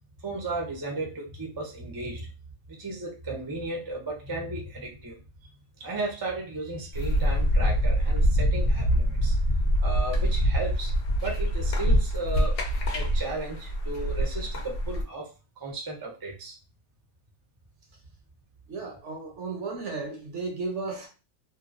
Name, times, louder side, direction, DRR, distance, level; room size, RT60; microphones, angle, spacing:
voice 1, 0.2-2.3 2.7-5.2 5.8-9.4 9.8-10.9 11.2-12.6 12.9-15.3 15.6-16.5, right 2 dB, 25° right, 0.5 m, -34 dB
sound 1, 6.9-15.0, equal, 55° left, 0.7 m, -25 dB
voice 2, 18.7-21.1, right 3 dB, 65° right, 1.0 m, -34 dB
2.9 x 2.2 x 2.5 m
omnidirectional pair, 1.4 m